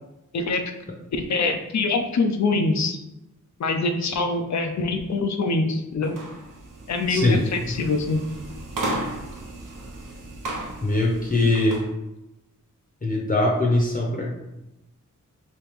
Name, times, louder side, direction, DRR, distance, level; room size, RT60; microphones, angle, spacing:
voice 1, 1.1-3.0 3.6-6.1 6.9-8.2, left 3 dB, 60° left, 6 dB, 0.5 m, -24 dB
sound 1, 6.0-11.9, right 1 dB, 80° right, 0.8 m, -35 dB
voice 2, 7.1-7.4 10.8-11.8 13.0-14.3, left 2 dB, 25° left, -2 dB, 0.7 m, -21 dB
3.1 x 2.9 x 3.4 m, 0.94 s
wide cardioid pair, 75°, 32 cm